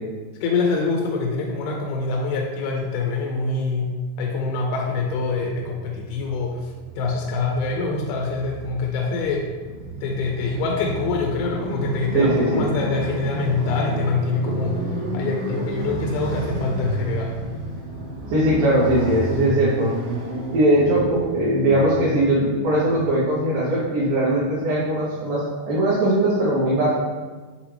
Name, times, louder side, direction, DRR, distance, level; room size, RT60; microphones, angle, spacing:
voice 1, 0.4-3.9 4.2-9.5 10.0-17.3, left 3 dB, 80° left, 0 dB, 2.3 m, -25 dB
Motorcycle, 5.3-23.2, right 1 dB, 90° right, 1.7 m, -32 dB
voice 2, 12.1-12.7 18.3-19.9 20.5-25.4 25.7-26.9, right 1 dB, 70° right, -8 dB, 2.2 m, -20 dB
6.8 x 2.4 x 3.2 m, 1.4 s
omnidirectional pair, 4.5 m